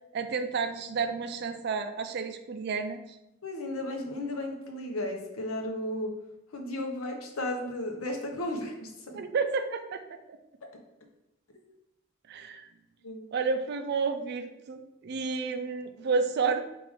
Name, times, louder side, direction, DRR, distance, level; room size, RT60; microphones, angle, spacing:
voice 1, 0.1-3.2 9.1-10.0 10.3-10.4 12.3-12.7 13.3-16.6, right 5 dB, 50° right, 8 dB, 0.3 m, -31 dB
voice 2, 3.4-6.1 6.5-8.9 11.5-11.6 13.0-13.2, left 1 dB, 85° left, 3 dB, 0.7 m, -34 dB
4.6 x 2.5 x 3.5 m, 0.88 s
head